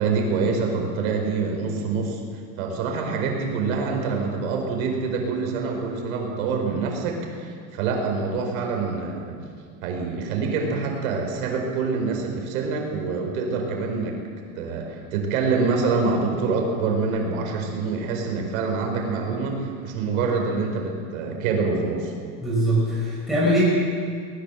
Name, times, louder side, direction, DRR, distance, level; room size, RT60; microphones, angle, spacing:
voice 1, 0.0-2.2 2.6-9.4 9.8-14.1 14.6-22.1, right 4 dB, 85° right, 2 dB, 5.0 m, -26 dB
voice 2, 22.4-23.6, equal, ahead, -7 dB, 5.5 m, -21 dB
20.5 x 20.0 x 7.6 m, 2.2 s
supercardioid pair, 155°, 41 cm